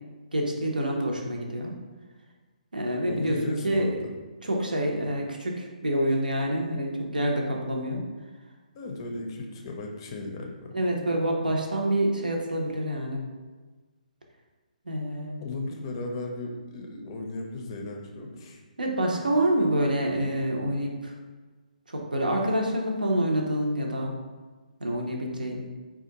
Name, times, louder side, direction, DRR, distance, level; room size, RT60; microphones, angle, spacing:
voice 1, 0.3-1.7 2.7-3.9 4.4-8.0 10.7-13.2 14.9-15.4 18.8-21.1 21.9-24.1 24.8-25.6, right 1 dB, 80° right, 0 dB, 0.7 m, -27 dB
voice 2, 3.1-4.1 8.7-10.8 15.4-18.6, left 2 dB, 35° left, 1 dB, 0.5 m, -36 dB
4.2 x 2.3 x 2.8 m, 1.3 s
figure-of-eight pair, 140°, 5 cm